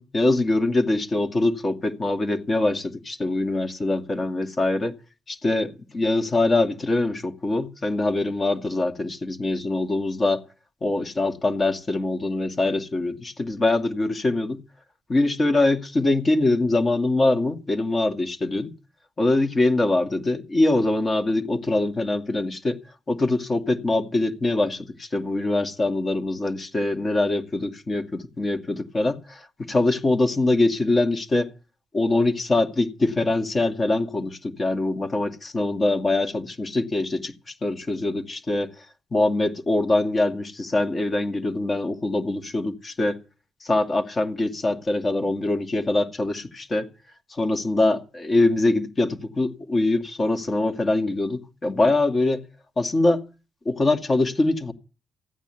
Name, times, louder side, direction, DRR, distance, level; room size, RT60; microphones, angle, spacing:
voice 1, 0.0-4.9 5.3-10.4 10.8-14.6 15.1-18.7 19.2-22.8 23.1-31.5 31.9-37.3 37.6-38.7 39.1-43.2 43.6-46.9 47.3-52.4 52.8-53.2 53.7-54.7, left 2 dB, 30° left, 2.4 m, -23 dB
15.0 x 9.1 x 9.1 m
cardioid pair, 90°, 0 cm